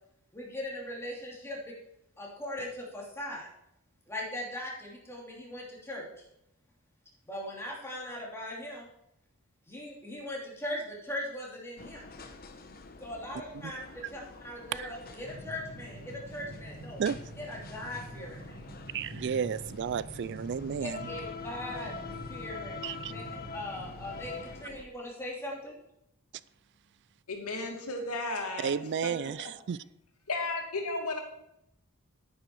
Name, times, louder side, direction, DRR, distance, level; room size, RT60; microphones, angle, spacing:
voice 1, 0.3-1.8 2.2-3.5 4.1-6.2 7.3-8.9 9.7-12.0 13.0-17.0 17.4-18.6 20.8-21.9 22.3-22.8 23.1-25.8, left 1 dB, 10° left, 3.1 m, -40 dB
sound 1, 11.8-24.8, left 4 dB, 45° left, 1.0 m, -46 dB
sound 2, 15.2-24.4, equal, 85° right, 5.3 m, -46 dB
voice 2, 18.9-21.1 22.8-23.1 28.6-29.8, right 7 dB, 50° right, 0.3 m, -32 dB
voice 3, 27.3-28.7 29.0-29.3 30.3-31.2, left 2 dB, 90° left, 2.4 m, -34 dB
10.0 x 9.5 x 4.8 m
head